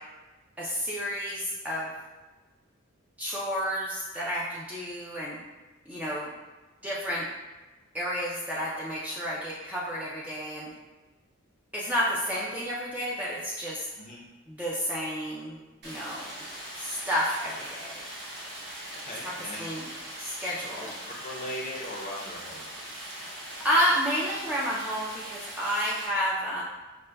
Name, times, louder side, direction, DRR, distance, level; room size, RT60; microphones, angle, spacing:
voice 1, 0.6-1.9 3.2-5.4 5.9-6.3 6.8-7.3 7.9-10.7 11.7-13.9 14.5-16.3 16.7-18.0 19.6-19.9 20.2-20.9 23.3-26.6, equal, 5° right, -7 dB, 0.3 m, -30 dB
Stream, 15.8-26.1, right 1 dB, 55° right, 0.8 m, -41 dB
voice 2, 19.0-19.7 20.7-22.7, left 1 dB, 30° left, -3 dB, 0.6 m, -39 dB
5.1 x 2.1 x 2.2 m, 1.2 s
head